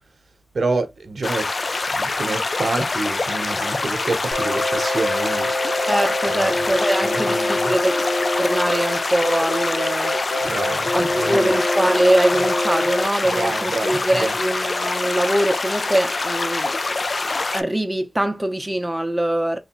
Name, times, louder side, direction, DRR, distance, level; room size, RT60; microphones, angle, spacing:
voice 1, 0.5-1.5 1.9-5.5 6.3-6.5 7.0-7.7 10.4-11.5 13.3-14.3, right 3 dB, 70° right, 0.7 m, -27 dB
sound 1, 1.2-17.6, left 3 dB, 50° left, 0.3 m, -25 dB
sound 2, 4.3-13.0, left 1 dB, 35° left, 1.4 m, -25 dB
voice 2, 5.9-10.2 10.9-17.0 17.5-19.6, right 1 dB, 10° right, 0.6 m, -23 dB
3.2 x 2.5 x 2.8 m
cardioid pair, 55°, 0 cm